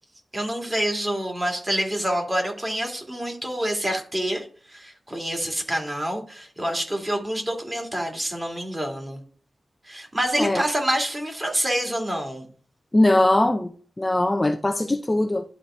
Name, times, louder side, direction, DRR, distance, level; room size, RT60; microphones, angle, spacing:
voice 1, 0.3-9.2 9.9-12.5, equal, 20° right, 2.4 m, -27 dB
voice 2, 12.9-13.7 14.0-15.4, left 1 dB, 20° left, 0.6 m, -20 dB
11.5 x 3.9 x 3.6 m
cardioid pair, 70°, 0 cm